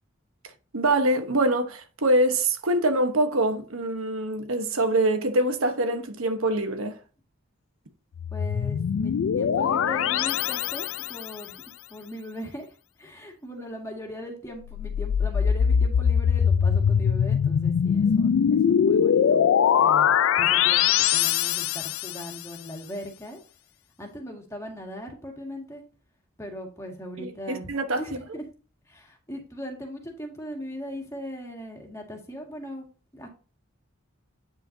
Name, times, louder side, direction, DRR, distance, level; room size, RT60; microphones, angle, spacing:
voice 1, 0.7-7.0 27.2-28.0, right 1 dB, 80° right, 1.1 m, -24 dB
sound 1, 8.2-11.3 14.6-22.3, left 8 dB, 70° left, 0.3 m, -22 dB
voice 2, 8.3-11.6 11.9-19.5 19.8-23.4 24.0-25.8 26.4-27.7 28.0-28.4 28.9-32.9 33.1-33.3, equal, 15° left, 1.9 m, -39 dB
9.2 x 5.8 x 2.7 m
head